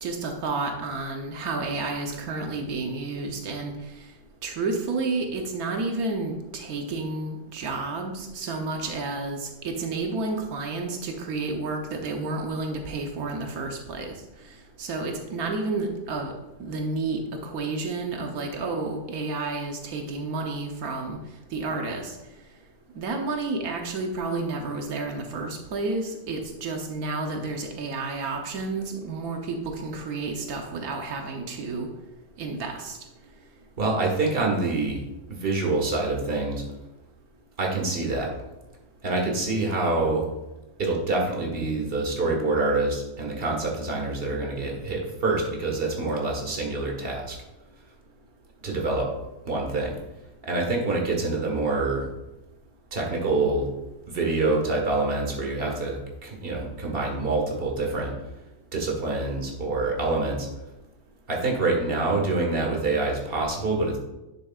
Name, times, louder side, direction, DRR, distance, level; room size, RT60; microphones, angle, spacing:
voice 1, 0.0-3.7 4.4-14.1 14.8-16.3 16.6-21.2 21.5-22.2 22.9-31.9 32.4-33.0, right 3 dB, 85° right, 3 dB, 1.4 m, -30 dB
voice 2, 33.8-35.0 35.3-36.6 37.6-38.3 39.0-40.2 40.8-47.4 48.6-49.1 49.4-49.9 50.5-52.1 52.9-53.7 54.1-56.0 56.2-58.1 58.7-60.5 61.3-64.0, right 3 dB, 40° right, 0 dB, 1.7 m, -26 dB
9.8 x 7.2 x 2.4 m, 0.99 s
omnidirectional pair, 1.5 m